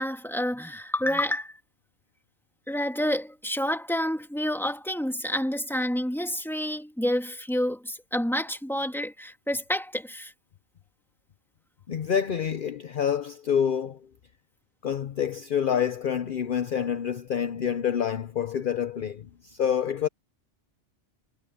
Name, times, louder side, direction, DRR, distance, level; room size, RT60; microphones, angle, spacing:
voice 1, 0.0-1.5 2.7-10.3, equal, ahead, 2.3 m, -29 dB
voice 2, 11.9-14.0 14.8-20.1, left 8 dB, 50° left, 0.8 m, -27 dB
omnidirectional pair, 1.2 m